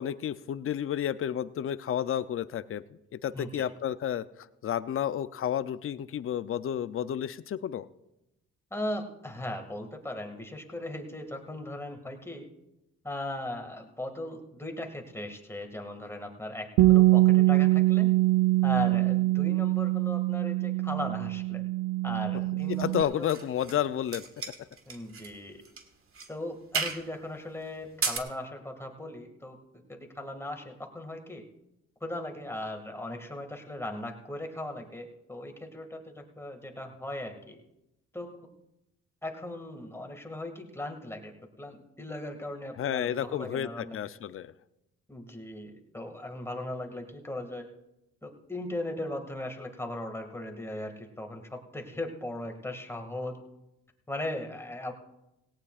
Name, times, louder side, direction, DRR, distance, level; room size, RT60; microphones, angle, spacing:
voice 1, 0.0-7.9 22.8-24.3 42.8-44.5, left 10 dB, 45° left, 14 dB, 0.6 m, -31 dB
voice 2, 3.3-3.7 8.7-12.5 13.0-18.1 18.6-21.6 22.0-23.3 24.9-25.6 26.3-31.4 32.0-37.6 38.1-38.5 39.2-41.3 41.6-44.0 45.1-47.7 48.2-53.4 54.1-54.9, left 1 dB, 10° left, 3 dB, 2.1 m, -38 dB
Bass guitar, 16.8-23.0, right 18 dB, 80° right, 0.5 m, -23 dB
Recorded Foils, 22.7-23.8 24.1-25.3 25.6-25.8 26.1-26.3 26.7-27.1 27.8-28.2, right 5 dB, 45° right, 1.7 m, -33 dB
18.0 x 17.5 x 2.5 m, 0.89 s
cardioid pair, 90°, 30 cm